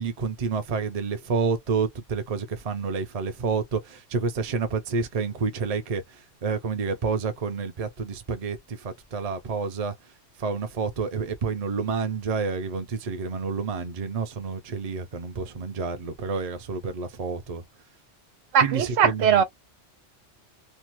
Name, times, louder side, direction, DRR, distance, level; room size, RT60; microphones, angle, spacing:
voice 1, 0.0-6.0 6.4-9.9 10.4-17.6 18.6-19.4, right 5 dB, 40° right, 0.6 m, -29 dB
voice 2, 18.5-19.4, right 8 dB, 90° right, 1.0 m, -20 dB
2.6 x 2.0 x 2.9 m
omnidirectional pair, 1.3 m